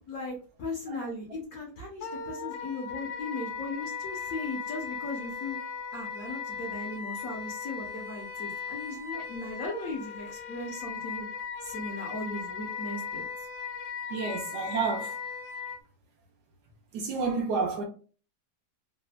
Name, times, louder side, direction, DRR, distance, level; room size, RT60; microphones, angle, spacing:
voice 1, 0.1-5.6 5.9-11.3 11.6-13.2, left 2 dB, 65° left, 1.0 m, -37 dB
Wind instrument woodwind instrument, 2.0-15.8, left 6 dB, 85° left, 1.2 m, -38 dB
voice 2, 14.1-15.2 16.9-17.8, right 4 dB, 80° right, 1.1 m, -30 dB
3.3 x 2.0 x 2.2 m
omnidirectional pair, 1.8 m